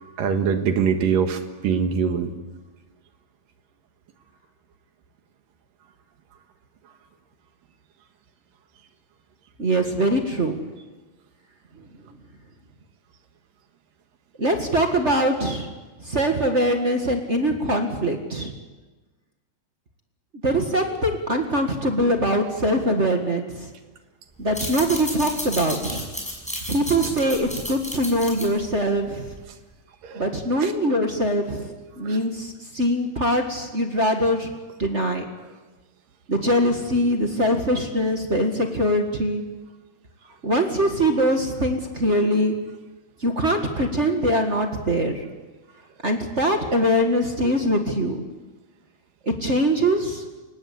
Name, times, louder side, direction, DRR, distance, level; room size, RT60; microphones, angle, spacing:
voice 1, 0.2-2.3 30.0-30.2 30.6-30.7 32.1-32.2, right 6 dB, 80° right, 7 dB, 3.4 m, -23 dB
voice 2, 9.6-10.5 14.4-15.7 16.1-18.5 20.4-23.7 24.4-26.1 26.7-29.2 30.2-34.5 34.8-35.2 36.3-39.4 40.4-42.5 43.2-45.2 46.0-48.2 49.4-50.2, equal, 30° right, 4 dB, 1.4 m, -22 dB
sound 1, 24.4-29.6, equal, ahead, 5.8 m, -33 dB
29.5 x 17.5 x 8.4 m, 1.3 s
omnidirectional pair, 3.9 m